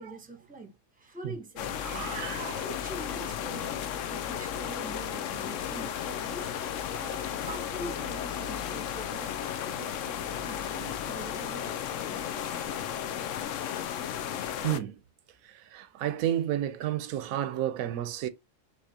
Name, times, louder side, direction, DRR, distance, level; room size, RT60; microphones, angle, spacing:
voice 1, 0.0-2.1 2.6-6.5 6.9-9.3 9.7-10.1 10.4-12.7, right 2 dB, 5° right, 0.9 m, -45 dB
sound 1, 1.6-14.8, left 9 dB, 70° left, 0.9 m, -34 dB
voice 2, 1.8-2.6 14.6-15.0 15.7-18.3, right 11 dB, 85° right, 1.0 m, -31 dB
6.3 x 3.0 x 2.7 m
omnidirectional pair, 1.4 m